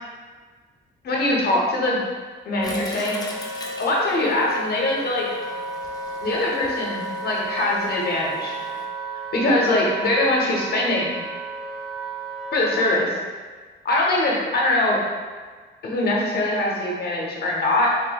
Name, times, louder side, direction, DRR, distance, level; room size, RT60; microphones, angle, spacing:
voice 1, 1.0-2.0 2.5-3.2 3.8-5.3 6.2-8.6 9.3-11.2 12.5-13.2 13.8-15.0 15.8-18.0, left 1 dB, 50° left, -3 dB, 0.9 m, -22 dB
Wind instrument woodwind instrument, 2.5-12.8, right 2 dB, ahead, 1.2 m, -33 dB
Toilet flush, 2.6-8.9, left 1 dB, 20° left, 0.5 m, -41 dB
3.6 x 3.0 x 2.3 m, 1.4 s
cardioid pair, 90°, 20 cm